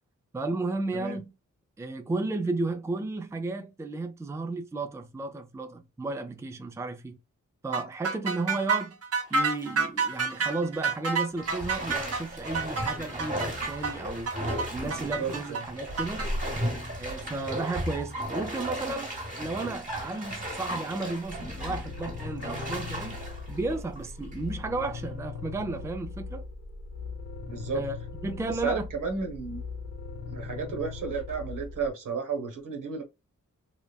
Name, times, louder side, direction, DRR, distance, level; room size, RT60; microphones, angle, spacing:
voice 1, 0.3-1.3 1.8-7.2 7.6-9.0 9.3-14.3 14.7-16.3 17.0-23.2 23.5-26.4 27.7-27.9 28.2-28.9, right 3 dB, 10° right, 0.4 m, -33 dB
sound 1, 7.7-16.3, right 4 dB, 50° right, 0.7 m, -29 dB
Bathtub (filling or washing), 9.3-9.7 10.1-10.2 11.4-24.5 25.0-25.1, equal, 25° right, 1.2 m, -35 dB
voice 2, 15.2-15.6 27.5-27.8 28.6-29.6 30.3-33.0, right 5 dB, 80° right, 0.9 m, -32 dB
sound 2, 21.2-31.9, left 4 dB, 55° left, 0.6 m, -39 dB
2.9 x 2.2 x 2.2 m
cardioid pair, 65°, 31 cm